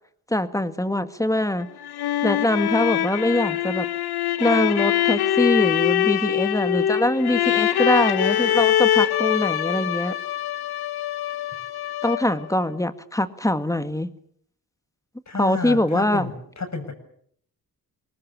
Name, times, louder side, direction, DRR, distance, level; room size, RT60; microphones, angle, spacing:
voice 1, 0.3-1.7 2.2-3.9 4.4-10.2 12.0-14.1 15.4-16.3, left 1 dB, 10° left, 10 dB, 2.0 m, -23 dB
sound 1, 1.6-12.5, left 11 dB, 90° left, 1.0 m, -23 dB
voice 2, 15.3-16.9, left 4 dB, 45° left, 7 dB, 6.8 m, -30 dB
23.0 x 19.5 x 8.8 m, 0.66 s
cardioid pair, 70°, 37 cm